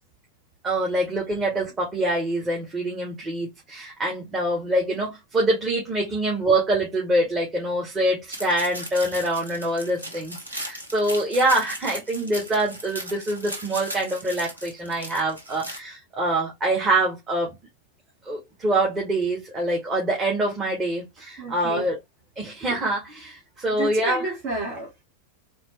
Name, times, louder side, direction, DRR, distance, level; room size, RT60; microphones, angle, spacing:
voice 1, 0.6-17.6 18.2-22.0 22.4-24.2, right 1 dB, 20° right, 1.8 m, -25 dB
sound 1, 8.3-15.8, right 1 dB, 85° right, 1.0 m, -37 dB
voice 2, 21.4-21.9 23.7-25.0, right 2 dB, 40° right, 1.6 m, -31 dB
4.1 x 3.0 x 3.3 m
figure-of-eight pair, 90°, 0 cm